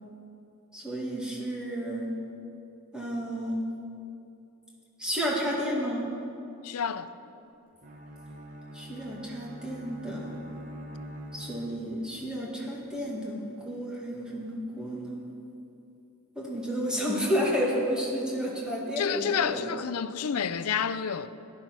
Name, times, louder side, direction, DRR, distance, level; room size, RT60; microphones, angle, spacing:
voice 1, 0.7-2.1 2.9-3.7 5.0-6.1 8.7-10.4 11.3-15.3 16.4-19.6, equal, 5° right, 2.3 m, -31 dB
voice 2, 6.6-7.1 19.0-21.3, left 7 dB, 85° left, 0.6 m, -29 dB
Bowed string instrument, 7.8-12.2, right 1 dB, 40° right, 1.3 m, -44 dB
14.5 x 10.5 x 6.1 m
head